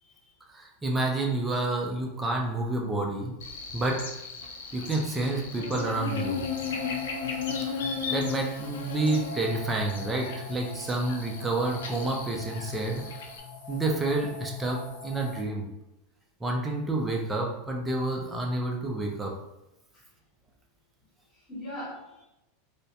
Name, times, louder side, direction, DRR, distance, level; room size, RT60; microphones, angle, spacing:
voice 1, 0.0-0.3 19.9-20.0 21.3-22.2, left 1 dB, 20° left, -8 dB, 1.2 m, -41 dB
voice 2, 0.5-3.4 3.7-4.1 4.7-6.5 8.1-13.1 13.7-15.7 16.4-19.3, right 2 dB, 10° right, 0 dB, 0.4 m, -29 dB
Buzz, 3.4-13.4, left 5 dB, 85° left, 0.4 m, -36 dB
sound 1, 5.9-15.4, left 3 dB, 65° left, 0.9 m, -41 dB
2.3 x 2.1 x 2.7 m, 0.91 s
supercardioid pair, 135°, 0 cm